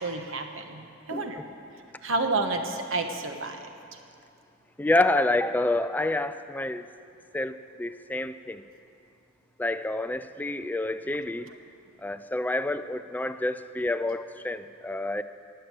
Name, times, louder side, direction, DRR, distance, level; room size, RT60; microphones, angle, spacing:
voice 1, 0.0-1.4 2.0-3.7 11.5-11.6, right 3 dB, 75° right, 5 dB, 1.2 m, -30 dB
voice 2, 4.8-6.8 7.3-8.6 9.6-11.5 12.0-15.2, left 2 dB, 10° left, 11 dB, 0.3 m, -28 dB
19.0 x 7.1 x 8.2 m, 2.5 s
head